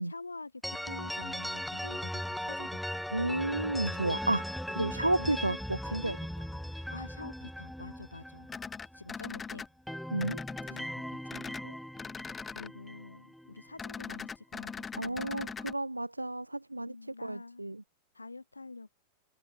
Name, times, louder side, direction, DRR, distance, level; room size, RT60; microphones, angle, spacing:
voice 1, 0.0-3.0 5.2-5.3 6.7-8.5 8.9-9.7 10.7-11.8 12.2-15.7 16.7-17.6 18.1-18.9, left 3 dB, 80° left, 3.4 m, -47 dB
sound 1, 0.6-9.4 9.6-13.8, equal, ahead, 1.5 m, -39 dB
voice 2, 3.1-4.5 4.7-6.5 10.1-10.4 10.7-10.8 15.0-17.8, right 1 dB, 85° right, 0.7 m, -32 dB
sound 2, 8.5-9.7 10.2-10.8 11.3-11.6 12.0-12.7 13.8-15.7, left 5 dB, 15° left, 2.8 m, -41 dB
figure-of-eight pair, 90°, 0 cm